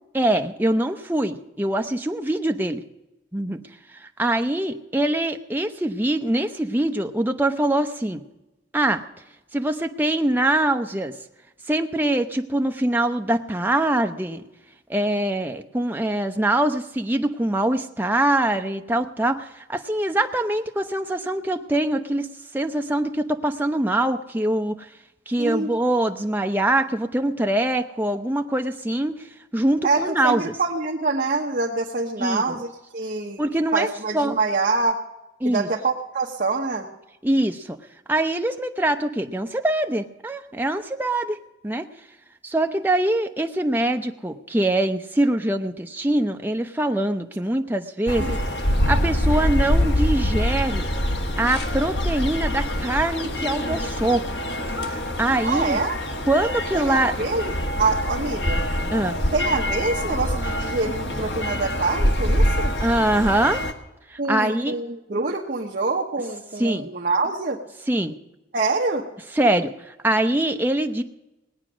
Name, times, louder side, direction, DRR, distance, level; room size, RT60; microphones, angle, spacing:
voice 1, 0.1-2.8 3.3-3.6 3.9-8.2 8.7-9.0 9.5-11.1 11.7-14.4 14.9-22.3 22.5-24.9 25.3-29.2 29.5-30.5 32.2-32.6 33.4-33.9 34.1-34.4 35.4-35.7 37.2-37.8 38.1-41.4 41.6-41.9 42.4-48.3 48.9-50.9 51.4-54.2 54.9-55.8 56.3-57.1 58.9-59.2 62.8-63.6 64.1-64.7 66.6-66.9 67.9-68.1 69.3-71.0, right 1 dB, 10° right, 5 dB, 0.7 m, -23 dB
voice 2, 25.4-25.7 29.8-33.4 33.7-35.0 35.4-36.9 48.2-48.5 55.4-56.0 56.7-58.7 59.3-62.7 64.2-67.6 68.5-69.1, right 3 dB, 45° right, -1 dB, 1.0 m, -25 dB
sound 1, 48.1-63.7, left 1 dB, 60° left, 1.3 m, -25 dB
19.5 x 8.9 x 6.2 m, 0.97 s
head